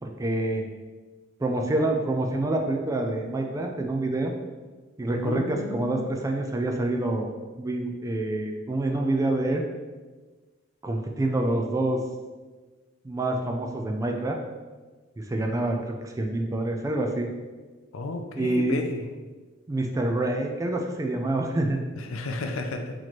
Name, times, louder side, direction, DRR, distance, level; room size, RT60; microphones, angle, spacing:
voice 1, 0.0-0.7 1.4-4.3 5.0-7.3 7.6-9.6 10.8-12.0 13.0-14.4 15.2-17.3 18.4-18.8 19.7-21.8, right 2 dB, 15° right, 2 dB, 0.3 m, -27 dB
voice 2, 5.1-6.1 17.9-19.0 22.1-22.9, left 2 dB, 75° left, 5 dB, 0.4 m, -32 dB
4.0 x 2.9 x 3.1 m, 1.3 s
head